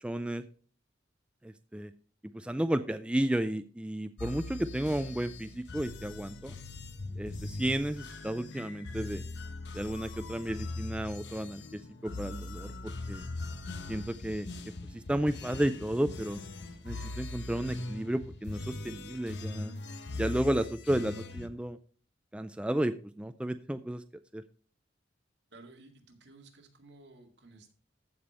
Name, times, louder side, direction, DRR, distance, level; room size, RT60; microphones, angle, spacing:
voice 1, 0.0-0.4 1.4-1.9 2.3-6.6 7.2-9.2 9.7-11.6 12.0-13.3 13.9-14.5 14.9-16.4 16.8-19.8 20.2-21.8 22.3-24.0 24.3-24.4, right 1 dB, 5° right, 10 dB, 0.3 m, -32 dB
sound 1, 4.2-21.5, left 2 dB, 65° left, 1.0 m, -41 dB
voice 2, 25.5-27.7, right 2 dB, 65° right, 2 dB, 2.2 m, -55 dB
14.5 x 5.2 x 4.3 m, 0.42 s
head